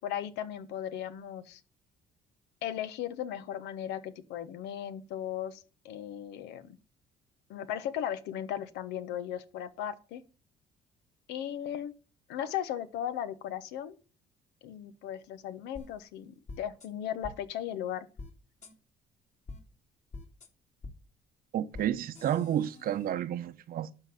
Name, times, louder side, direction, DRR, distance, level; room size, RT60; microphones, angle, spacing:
voice 1, 0.0-1.6 2.6-6.8 7.5-10.2 11.3-11.9 12.3-14.0 14.6-18.1, left 10 dB, 90° left, 1.1 m, -37 dB
sound 1, 15.8-15.9 16.5-16.9 17.2-17.3 18.2-18.3 18.6-18.7 19.5-19.6 20.1-20.5 20.8-20.9 21.7-21.9 22.2-23.1, left 3 dB, 45° left, 2.3 m, -45 dB
voice 2, 21.5-23.9, right 10 dB, 60° right, 0.9 m, -31 dB
12.0 x 3.9 x 7.7 m
cardioid pair, 110°, 17 cm